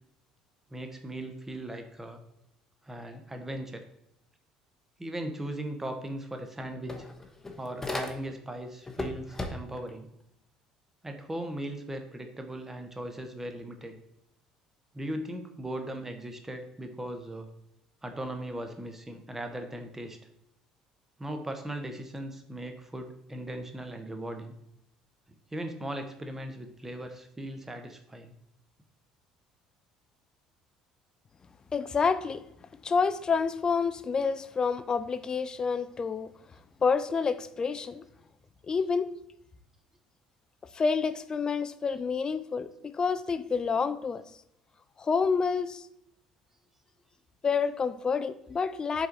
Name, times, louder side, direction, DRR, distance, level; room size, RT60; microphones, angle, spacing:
voice 1, 0.7-2.2 2.8-3.8 5.0-7.0 7.6-10.1 11.0-14.0 14.9-17.5 18.0-20.2 21.2-24.5 25.5-28.3, right 1 dB, 15° right, 6 dB, 1.1 m, -38 dB
sound 1, 5.9-6.0 6.3-8.5 8.8-9.9, left 2 dB, 15° left, 1.0 m, -37 dB
voice 2, 31.7-32.4 32.8-36.3 36.8-38.0 38.7-39.1 40.7-44.2 45.0-45.8 47.4-49.1, left 5 dB, 30° left, 12 dB, 0.5 m, -28 dB
6.9 x 3.9 x 4.0 m, 0.77 s
figure-of-eight pair, 60°, 3 cm